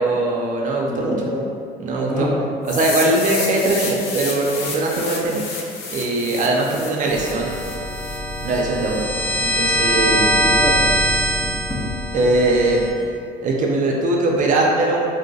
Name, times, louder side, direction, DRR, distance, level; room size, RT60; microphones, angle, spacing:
voice 1, 0.0-1.2 1.8-2.3 2.7-5.4 5.9-7.5 8.4-9.1 9.4-10.1 12.1-12.9 13.4-15.1, right 2 dB, 50° right, -2 dB, 0.5 m, -20 dB
voice 2, 0.9-1.5 2.1-2.4 10.0-10.9 11.4-12.0, equal, 10° left, -4 dB, 0.5 m, -26 dB
sound 1, 2.6-8.6, left 4 dB, 80° left, 0.6 m, -31 dB
sound 2, 7.1-12.9, equal, 40° left, 1.1 m, -22 dB
2.7 x 2.1 x 4.0 m, 2.4 s
cardioid pair, 110°, 17 cm